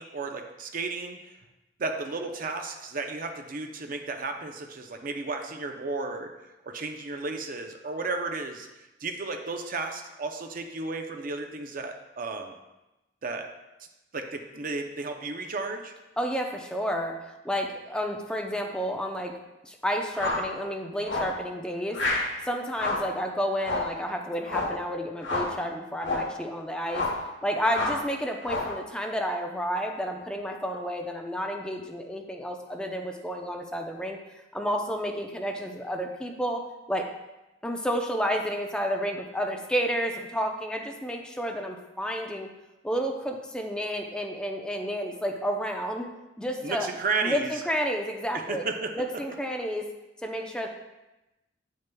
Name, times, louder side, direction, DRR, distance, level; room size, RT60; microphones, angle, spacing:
voice 1, 0.0-1.3 1.8-6.3 6.6-12.6 13.2-13.5 14.1-15.9 46.6-47.5 48.3-49.0, right 3 dB, 50° right, 5 dB, 0.6 m, -33 dB
voice 2, 16.2-19.3 19.6-22.0 22.4-27.0 27.4-37.1 37.6-42.5 42.8-46.1 46.4-46.9 47.2-48.6 49.0-49.9 50.2-50.7, equal, 5° left, 2 dB, 0.6 m, -31 dB
sound 1, 20.1-20.5 21.0-21.4 21.9-22.3 22.7-23.1 23.6-24.0 24.4-24.8 25.2-25.6 26.0-26.3 26.9-27.2 27.7-28.1 28.4-28.8, left 2 dB, 85° left, 1.1 m, -29 dB
8.5 x 6.4 x 2.3 m, 0.99 s
head